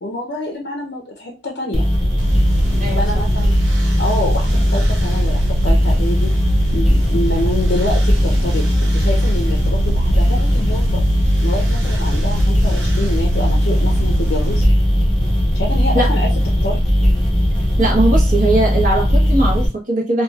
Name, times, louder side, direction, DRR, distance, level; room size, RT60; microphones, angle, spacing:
voice 1, 0.0-1.8 2.9-3.5 4.0-6.3 6.7-8.6 8.9-14.6 15.5-16.3 16.6-16.8, left 1 dB, 60° left, 0 dB, 0.5 m, -26 dB
sound 1, 1.7-19.7, equal, 5° left, 1.0 m, -17 dB
sound 2, 2.2-14.7, right 3 dB, 85° right, 0.8 m, -30 dB
voice 2, 17.8-20.2, right 2 dB, 45° right, -1 dB, 0.8 m, -19 dB
3.1 x 2.3 x 2.3 m, 0.28 s
head